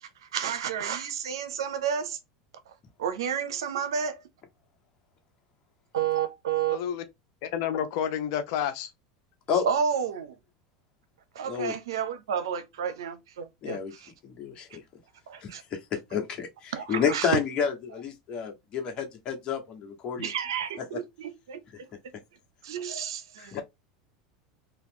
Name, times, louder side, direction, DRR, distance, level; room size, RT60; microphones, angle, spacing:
voice 1, 0.0-2.2 2.7-2.8 3.0-4.2 5.9-6.8 9.6-10.4 11.3-14.1 15.3-15.6 16.7-17.3 20.2-21.8 22.6-23.6, right 7 dB, 85° right, 0.6 m, -31 dB
voice 2, 6.7-7.0 7.4-8.9, left 9 dB, 65° left, 0.7 m, -30 dB
voice 3, 13.6-13.9 14.2-14.8 15.4-15.8 16.1-20.3 23.4-23.6, left 7 dB, 40° left, 1.1 m, -30 dB
2.9 x 2.3 x 3.6 m
hypercardioid pair, 100°, 2 cm